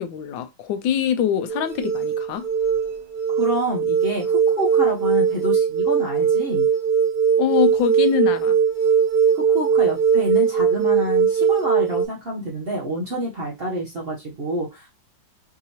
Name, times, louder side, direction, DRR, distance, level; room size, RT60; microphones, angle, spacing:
voice 1, 0.0-2.4 7.4-8.6, left 8 dB, 85° left, 1.3 m, -24 dB
sound 1, 1.5-12.1, right 7 dB, 70° right, 1.5 m, -20 dB
voice 2, 3.4-6.7 9.3-14.9, equal, 45° right, 0.8 m, -27 dB
4.8 x 2.8 x 2.8 m
omnidirectional pair, 2.0 m